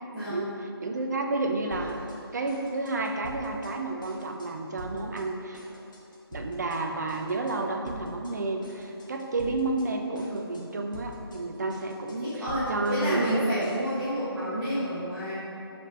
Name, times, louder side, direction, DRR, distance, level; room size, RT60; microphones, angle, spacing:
voice 1, 0.1-0.5 12.2-15.3, equal, ahead, -22 dB, 1.3 m, -29 dB
voice 2, 0.8-2.1 2.3-5.6 6.3-12.3 12.7-13.4, right 2 dB, 45° right, 3 dB, 0.7 m, -31 dB
sound 1, 1.7-2.2 2.5-3.7 4.0-4.5 4.8-5.2 5.5-6.8 7.1-7.5 7.9-8.3 8.6-9.9 10.1-10.6 10.9-13.9, left 1 dB, 50° left, 1.5 m, -45 dB
5.7 x 4.5 x 5.4 m, 2.9 s
figure-of-eight pair, 165°, 13 cm